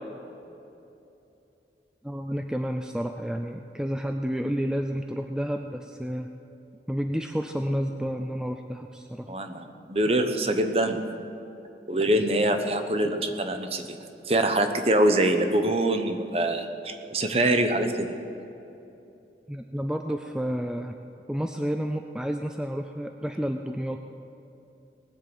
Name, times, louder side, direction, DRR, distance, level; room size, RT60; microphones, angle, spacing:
voice 1, 2.0-6.3 6.9-9.3 19.5-20.9 21.3-24.0, equal, 5° right, 5 dB, 0.4 m, -30 dB
voice 2, 9.3-11.0 11.9-13.8 14.3-18.1, right 1 dB, 35° right, 6 dB, 1.0 m, -24 dB
19.5 x 7.5 x 7.9 m, 2.9 s
head